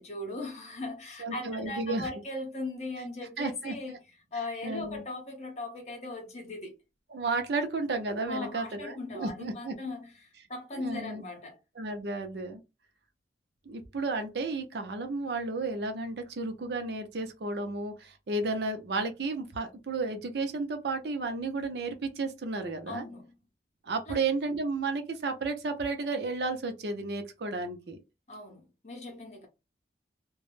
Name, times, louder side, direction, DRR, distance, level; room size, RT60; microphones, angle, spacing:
voice 1, 0.0-4.0 4.3-6.8 8.2-11.6 22.9-23.3 24.1-24.2 28.3-29.5, left 2 dB, 40° left, 0.8 m, -39 dB
voice 2, 1.2-2.1 3.4-4.0 4.6-5.0 7.1-9.7 10.7-11.2 11.8-12.6 13.7-23.1 23.8-28.0, right 3 dB, 65° right, 0.5 m, -33 dB
2.2 x 2.0 x 3.1 m
head